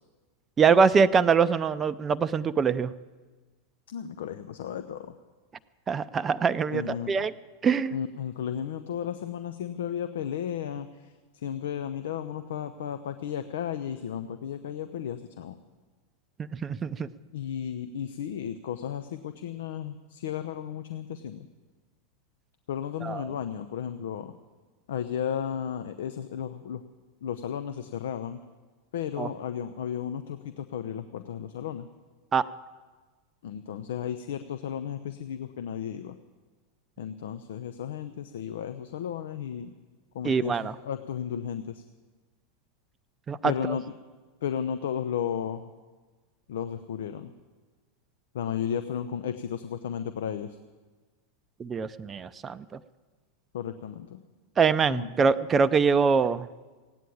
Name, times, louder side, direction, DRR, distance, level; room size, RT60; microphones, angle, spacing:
voice 1, 0.6-2.9 5.9-7.3 7.6-7.9 16.5-17.1 23.0-23.2 29.2-29.3 32.3-32.5 40.2-40.7 43.3-43.8 51.6-52.8 54.6-56.5, right 5 dB, 25° right, 13 dB, 0.5 m, -24 dB
voice 2, 3.9-5.2 6.7-7.3 7.9-15.6 17.3-21.5 22.7-24.3 24.9-26.8 27.2-28.4 28.9-31.9 33.4-36.2 37.0-39.7 40.1-41.8 43.4-43.8 44.4-45.7 46.5-47.3 48.3-50.6 53.5-54.2 54.9-55.1, left 9 dB, 70° left, 10 dB, 0.7 m, -34 dB
16.5 x 9.2 x 8.5 m, 1.4 s
figure-of-eight pair, 90°, 0 cm